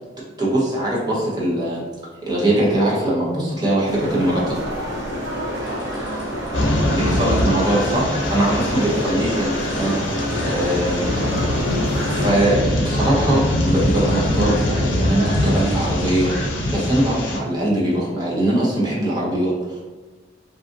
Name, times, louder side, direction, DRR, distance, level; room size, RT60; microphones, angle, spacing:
voice 1, 0.4-1.8 2.2-4.6 6.9-11.0 11.3-11.7 12.0-19.9, right 1 dB, 20° right, -5 dB, 0.7 m, -21 dB
sound 1, 3.9-12.3, equal, 80° right, 1.2 m, -27 dB
sound 2, 4.1-16.5, left 1 dB, 45° left, 0.6 m, -37 dB
sound 3, 6.5-17.4, left 1 dB, 90° left, 0.5 m, -23 dB
2.6 x 2.4 x 2.5 m, 1.2 s
head